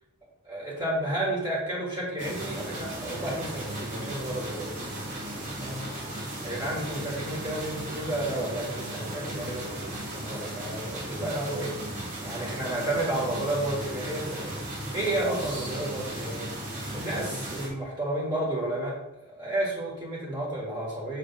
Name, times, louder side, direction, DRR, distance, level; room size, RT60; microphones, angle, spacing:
voice 1, 0.4-4.8 5.5-5.9 6.4-11.7 12.2-14.6 14.9-16.5 16.9-19.0 19.2-21.2, right 1 dB, 20° right, -5 dB, 1.7 m, -31 dB
sound 1, 2.2-17.7, right 1 dB, 35° right, 1.5 m, -36 dB
6.6 x 3.4 x 5.4 m, 0.94 s
head